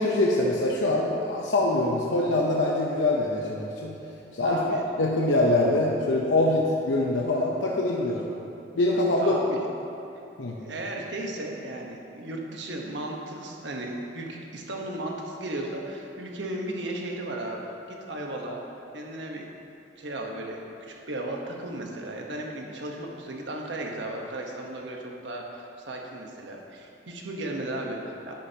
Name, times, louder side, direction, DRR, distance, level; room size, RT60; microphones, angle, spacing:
voice 1, 0.0-3.9 4.3-4.6 5.0-8.2 8.8-9.4 10.4-10.6, left 2 dB, 90° left, -2 dB, 0.8 m, -24 dB
voice 2, 4.4-4.8 9.2-9.6 10.6-18.6 18.9-19.5 20.0-28.3, right 1 dB, 75° right, 0 dB, 1.1 m, -35 dB
10.0 x 9.7 x 2.9 m, 2.8 s
head